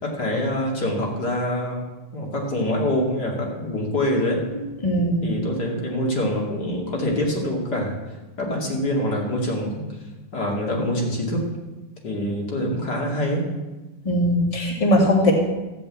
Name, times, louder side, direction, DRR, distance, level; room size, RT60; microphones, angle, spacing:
voice 1, 0.0-1.8 2.1-4.4 5.2-8.0 8.4-9.9 10.3-11.5 12.0-13.5, left 1 dB, 50° left, -1 dB, 3.0 m, -25 dB
voice 2, 4.8-5.2 14.1-15.3, left 1 dB, 15° left, 0 dB, 1.8 m, -19 dB
14.5 x 5.3 x 8.6 m, 1.1 s
omnidirectional pair, 2.4 m